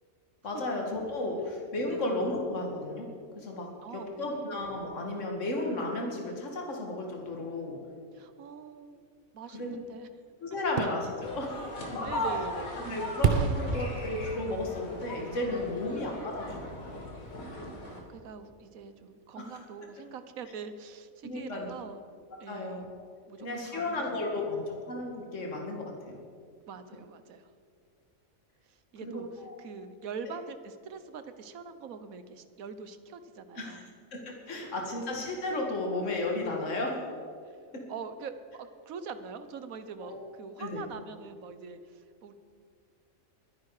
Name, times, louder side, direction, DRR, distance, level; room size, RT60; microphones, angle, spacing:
voice 1, 0.4-3.1 3.4-7.8 9.5-9.8 10.4-12.0 12.8-16.7 19.4-19.5 21.2-21.7 22.5-22.8 23.4-26.2 29.0-29.6 33.6-33.8 34.1-37.0 37.7-37.8 40.0-40.2 40.6-40.8, left 2 dB, 60° left, 0 dB, 2.3 m, -34 dB
voice 2, 3.8-4.4 8.1-9.0 9.3-10.1 12.0-12.9 13.4-14.0 15.7-16.0 17.5-22.0 22.4-22.9 23.3-24.0 24.5-24.6 26.7-27.5 28.7-33.9 37.4-37.6 37.9-42.3, right 5 dB, 80° right, 11 dB, 1.4 m, -44 dB
Fireworks, 10.6-16.5 16.9-17.0, right 5 dB, 45° right, 0.8 m, -33 dB
sound 1, 11.2-18.0, left 1 dB, 90° left, 2.6 m, -38 dB
22.5 x 10.5 x 4.9 m, 2.2 s
omnidirectional pair, 1.4 m